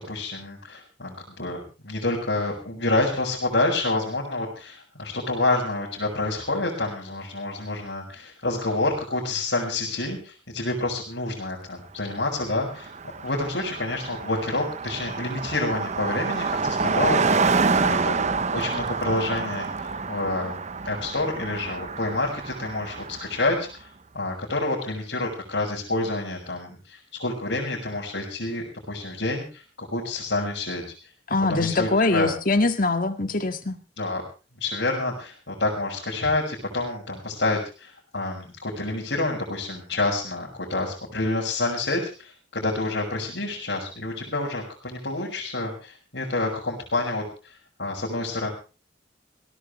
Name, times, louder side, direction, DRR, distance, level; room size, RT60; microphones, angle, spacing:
voice 1, 0.0-12.9 13.2-23.9 24.1-30.8 31.5-32.3 34.0-34.2 34.6-47.2 47.8-48.5, left 2 dB, 75° left, -5 dB, 5.9 m, -28 dB
Car passing by, 12.2-12.3 12.5-23.5, right 4 dB, 40° right, 0.8 m, -27 dB
voice 2, 31.3-33.8, left 2 dB, 50° left, 8 dB, 1.8 m, -23 dB
20.5 x 18.0 x 3.3 m, 0.34 s
head